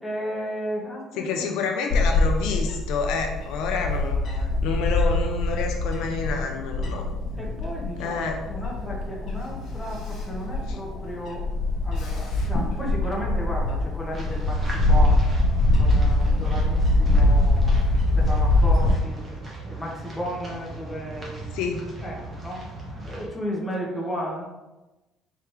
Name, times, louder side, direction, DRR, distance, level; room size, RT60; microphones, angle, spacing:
voice 1, 0.0-1.5 4.0-4.6 7.3-8.2 8.5-11.5 11.8-15.4 15.7-19.2 19.7-21.6 22.0-22.7 23.0-24.4, equal, 5° left, -4 dB, 1.0 m, -34 dB
voice 2, 1.2-4.2 4.6-7.1 8.0-8.4 21.5-21.8, left 5 dB, 75° left, 3 dB, 0.5 m, -28 dB
Bird / Wind, 1.9-18.9, left 2 dB, 55° left, 1.1 m, -23 dB
sound 1, 14.1-23.3, right 3 dB, 25° right, 1.0 m, -37 dB
4.7 x 3.4 x 3.1 m, 1.1 s
cardioid pair, 150°, 0 cm